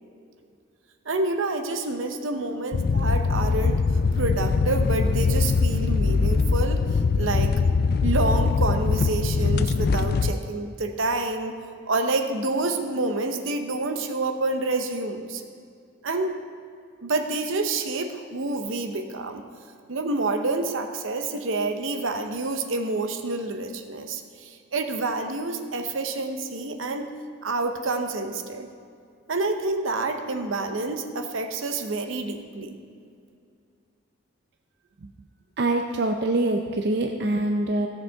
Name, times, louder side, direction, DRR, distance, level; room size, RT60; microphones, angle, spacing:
voice 1, 1.1-3.8 4.2-7.5 8.0-11.5 11.9-15.4 16.0-16.4 17.0-19.4 19.9-27.1 27.4-28.7 29.3-32.8, right 2 dB, 75° right, 6 dB, 0.8 m, -28 dB
sound 1, 2.7-10.3, left 4 dB, 50° left, 0.3 m, -22 dB
voice 2, 35.6-37.9, right 2 dB, 55° right, 4 dB, 0.5 m, -24 dB
16.0 x 6.7 x 3.5 m, 2.3 s
head